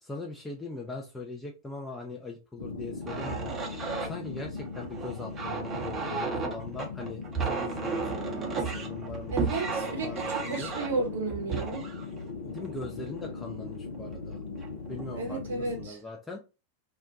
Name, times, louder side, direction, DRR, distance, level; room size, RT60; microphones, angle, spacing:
voice 1, 0.0-3.5 4.0-10.7 12.4-14.4 14.9-16.4, left 3 dB, 10° left, 0.5 m, -41 dB
sound 1, 2.6-15.9, left 4 dB, 70° left, 0.4 m, -39 dB
sound 2, 3.0-13.3 13.9-14.2 14.6-15.1, right 5 dB, 25° right, 0.7 m, -34 dB
voice 2, 9.3-11.9 15.1-16.0, right 3 dB, 60° right, 0.7 m, -33 dB
2.3 x 2.1 x 3.8 m
figure-of-eight pair, 90°, 0 cm